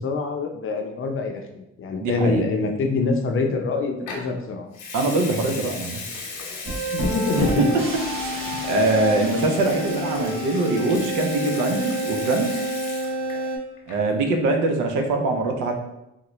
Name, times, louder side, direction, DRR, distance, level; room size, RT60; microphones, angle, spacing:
voice 1, 0.0-4.7 6.9-7.7, left 3 dB, 45° left, 3 dB, 0.6 m, -25 dB
voice 2, 2.0-2.4 4.9-6.0 7.3-7.8 8.2-12.6 13.9-15.7, right 2 dB, 85° right, 3 dB, 0.6 m, -23 dB
Water tap faucet / Sink (filling or washing) / Liquid, 4.1-4.3 4.7-13.5 13.8-14.1, left 4 dB, 85° left, 0.8 m, -37 dB
sound 1, 6.6-13.6, right 1 dB, 45° right, 1.1 m, -28 dB
3.7 x 2.1 x 3.0 m, 0.87 s
cardioid pair, 90°, 30 cm